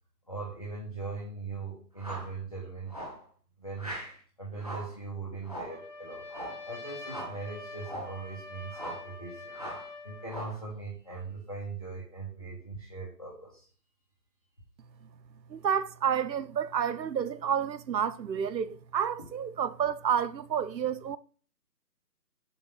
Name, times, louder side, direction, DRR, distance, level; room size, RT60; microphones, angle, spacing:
voice 1, 0.3-3.0 3.6-3.9 4.4-6.3 6.7-13.7, right 4 dB, 25° left, 0.8 m, -40 dB
sound 1, 2.0-2.3 2.9-3.2 3.8-4.2 4.6-5.0 5.4-5.8 6.3-6.6 7.1-7.4 7.8-8.2 8.7-9.1 9.5-9.9 10.3-10.6, right 1 dB, 25° right, 0.7 m, -40 dB
Trumpet, 5.6-10.4, left 3 dB, 45° left, 1.6 m, -45 dB
voice 2, 15.5-21.2, right 8 dB, 85° right, 0.7 m, -30 dB
6.9 x 2.5 x 5.5 m
figure-of-eight pair, 165°, 50 cm